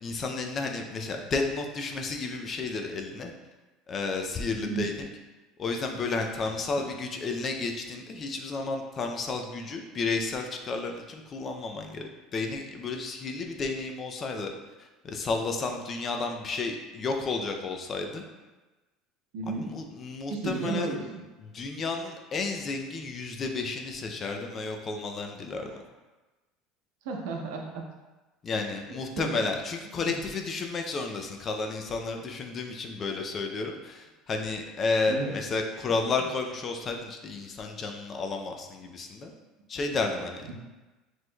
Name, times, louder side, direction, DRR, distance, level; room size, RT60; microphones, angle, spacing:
voice 1, 0.0-3.3 3.9-5.1 5.6-14.5 15.0-18.2 19.6-21.0 21.5-25.7 28.4-39.3 39.7-40.5, left 3 dB, 25° left, 4 dB, 0.4 m, -32 dB
voice 2, 4.6-4.9 19.3-19.7 20.3-21.2 25.7-25.8 27.0-27.9 29.2-29.3 29.9-30.2 35.1-35.3 40.4-40.5, right 4 dB, 80° right, 1 dB, 0.7 m, -33 dB
6.2 x 3.1 x 2.2 m, 1.2 s
cardioid pair, 170°, 0 cm